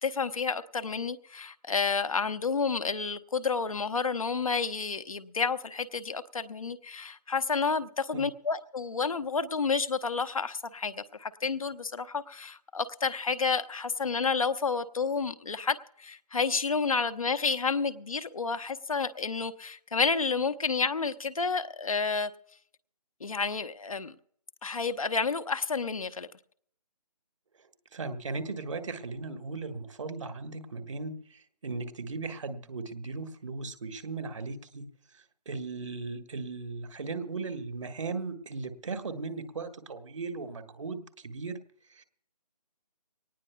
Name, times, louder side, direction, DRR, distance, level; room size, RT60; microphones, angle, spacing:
voice 1, 0.0-22.3 23.2-24.1 24.6-26.3, left 5 dB, 55° left, 0.9 m, -30 dB
voice 2, 27.9-34.9 35.4-41.6 42.0-42.1, right 3 dB, 50° right, 1.7 m, -37 dB
23.5 x 19.0 x 2.3 m
figure-of-eight pair, 150°, 20 cm